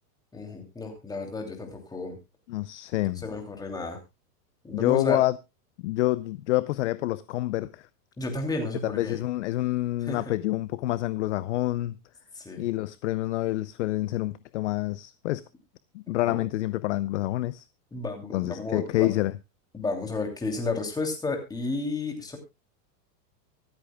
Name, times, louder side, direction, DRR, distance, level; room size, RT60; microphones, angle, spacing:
voice 1, 0.3-2.2 3.2-4.0 4.6-5.2 8.2-9.2 10.0-10.2 12.3-12.7 16.1-16.4 17.9-19.2 19.7-22.4, left 3 dB, 10° left, 2.8 m, -32 dB
voice 2, 2.5-3.2 4.7-5.4 5.8-7.9 8.8-12.0 12.6-15.4 15.9-17.7 18.3-19.3, left 17 dB, 45° left, 0.5 m, -27 dB
24.5 x 8.6 x 2.3 m
supercardioid pair, 160°, 50 cm